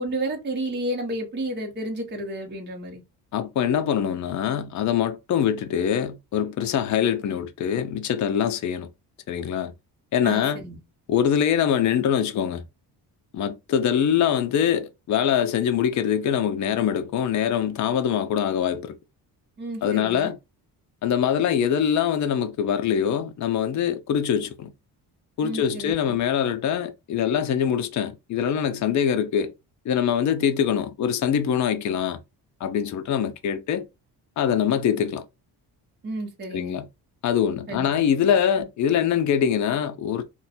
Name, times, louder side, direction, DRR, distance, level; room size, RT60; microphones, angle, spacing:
voice 1, 0.0-3.0 10.2-10.8 19.6-20.3 25.4-26.2 36.0-36.8 37.7-37.9, right 1 dB, 25° right, 0.8 m, -31 dB
voice 2, 3.3-8.9 9.3-9.7 10.1-10.6 11.1-12.6 13.3-19.0 19.8-20.4 21.0-24.7 25.4-29.5 29.9-32.2 32.6-33.8 34.4-35.2 36.5-36.9 37.2-40.2, left 8 dB, 45° left, 0.4 m, -23 dB
2.5 x 2.2 x 4.0 m
cardioid pair, 160°, 41 cm